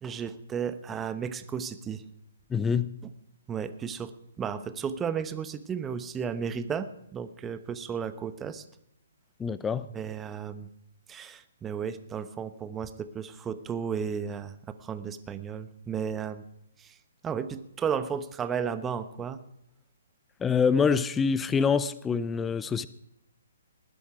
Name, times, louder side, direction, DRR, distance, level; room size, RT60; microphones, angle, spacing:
voice 1, 0.0-2.0 3.5-4.1 4.4-8.6 9.9-10.7 11.1-16.4 16.8-16.9 17.2-19.4, right 7 dB, 15° right, 12 dB, 1.0 m, -34 dB
voice 2, 2.5-2.9 9.4-9.9 20.4-22.9, left 6 dB, 10° left, 16 dB, 0.5 m, -25 dB
20.0 x 10.5 x 4.9 m, 0.81 s
hypercardioid pair, 140°, 0 cm